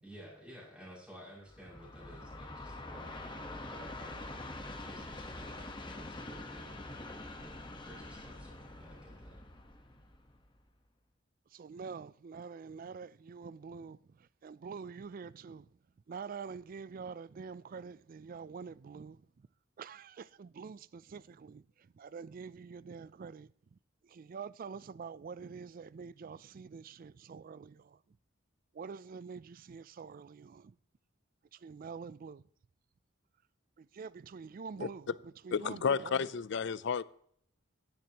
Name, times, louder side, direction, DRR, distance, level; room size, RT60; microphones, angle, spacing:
voice 1, 0.0-6.8 7.4-9.3, equal, 5° right, 6.0 m, -54 dB
Train, 1.5-10.7, left 2 dB, 25° left, 1.2 m, -45 dB
voice 2, 11.5-15.8 16.1-19.5 19.8-23.8 24.0-28.2 28.7-30.8 31.6-32.4 33.8-36.3, right 5 dB, 45° right, 0.3 m, -46 dB
voice 3, 35.5-37.0, left 6 dB, 60° left, 0.5 m, -32 dB
16.0 x 10.5 x 2.9 m
head